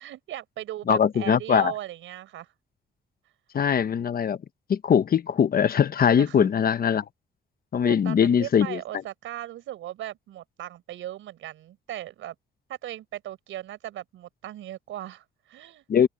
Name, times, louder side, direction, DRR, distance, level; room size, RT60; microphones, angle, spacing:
voice 1, 0.0-2.5 6.2-6.5 7.8-12.3 12.7-15.8, right 13 dB, 80° right, 4.9 m, -38 dB
voice 2, 0.9-1.7 3.5-4.4 4.7-7.0 7.7-8.8 15.9-16.1, left 8 dB, 50° left, 1.1 m, -21 dB
cardioid pair, 90°, 20 cm